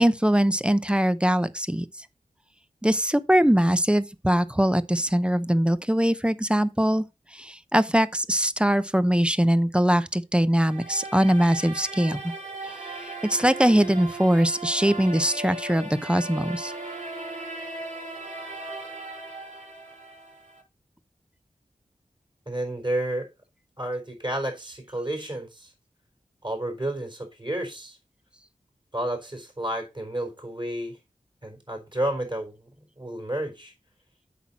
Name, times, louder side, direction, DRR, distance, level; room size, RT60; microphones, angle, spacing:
voice 1, 0.0-1.9 2.8-7.0 7.3-12.3 12.6-16.7, equal, 5° right, 0.7 m, -22 dB
sound 1, 10.6-20.6, right 2 dB, 65° right, 3.6 m, -37 dB
voice 2, 22.5-23.3 23.8-25.7 26.4-28.0 28.9-31.0 31.4-33.7, right 1 dB, 35° right, 4.1 m, -31 dB
8.2 x 6.1 x 4.1 m
wide cardioid pair, 60°, 14 cm